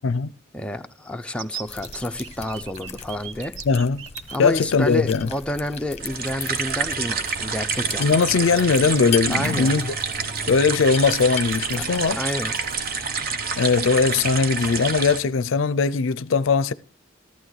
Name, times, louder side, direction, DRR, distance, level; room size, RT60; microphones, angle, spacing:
voice 1, 0.5-3.5 4.3-8.2 9.3-9.7 11.9-12.5, left 1 dB, 5° left, 0.5 m, -29 dB
sound 1, 1.3-4.4 5.4-5.5 5.8-5.9 7.6-7.7 8.1-8.4 8.8-9.5 9.9-10.0 10.3-10.7 11.1-12.8, right 9 dB, 75° right, 0.7 m, -40 dB
sound 2, 1.7-12.9, left 7 dB, 35° left, 0.9 m, -38 dB
voice 2, 3.7-4.0 4.4-5.3 8.0-9.9 10.5-12.2 13.6-16.7, left 4 dB, 75° left, 0.4 m, -20 dB
sound 3, 6.0-15.2, right 5 dB, 50° right, 0.9 m, -28 dB
14.0 x 11.5 x 3.2 m
head